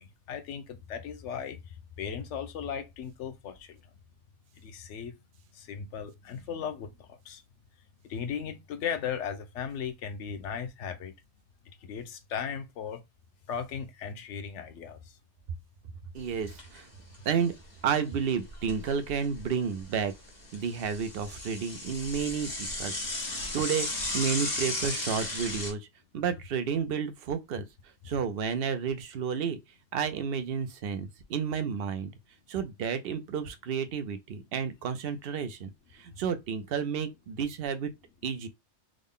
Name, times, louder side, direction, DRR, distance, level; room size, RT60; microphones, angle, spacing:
voice 1, 0.0-3.8 4.6-5.2 5.5-7.4 8.0-11.1 11.8-13.0 13.5-15.2, left 7 dB, 90° left, 1.0 m, -37 dB
voice 2, 16.1-16.9 17.3-17.5 17.8-20.1 20.5-22.9 23.2-23.9 24.1-25.9 26.1-27.6 28.0-29.6 29.9-32.1 32.5-37.9 38.2-38.5, right 6 dB, 60° right, 0.7 m, -31 dB
Bicycle / Mechanisms, 16.2-16.8 17.1-17.2 17.5-17.6 18.2-19.4 19.8-25.7, left 2 dB, 40° left, 1.2 m, -35 dB
3.6 x 2.1 x 3.6 m
omnidirectional pair, 1.2 m